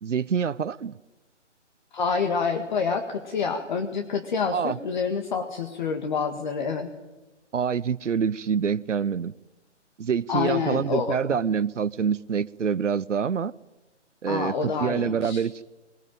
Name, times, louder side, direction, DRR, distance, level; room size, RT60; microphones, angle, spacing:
voice 1, 0.0-0.9 4.5-4.8 7.5-9.3 10.0-13.5 14.2-15.6, right 7 dB, 75° right, 0.8 m, -26 dB
voice 2, 1.9-6.9 10.3-11.2 14.3-15.4, left 5 dB, 40° left, 1.8 m, -27 dB
21.5 x 20.5 x 9.1 m
figure-of-eight pair, 145°, 36 cm